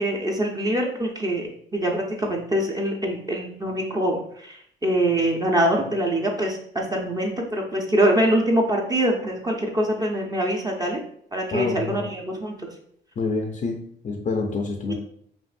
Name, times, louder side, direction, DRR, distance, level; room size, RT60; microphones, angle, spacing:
voice 1, 0.0-4.6 4.8-11.0 11.3-12.7 14.9-15.0, right 1 dB, 20° right, 0 dB, 0.7 m, -24 dB
voice 2, 11.5-12.1 13.2-14.9, left 3 dB, 40° left, 2 dB, 0.5 m, -27 dB
5.3 x 2.5 x 2.6 m, 0.64 s
cardioid pair, 90°, 20 cm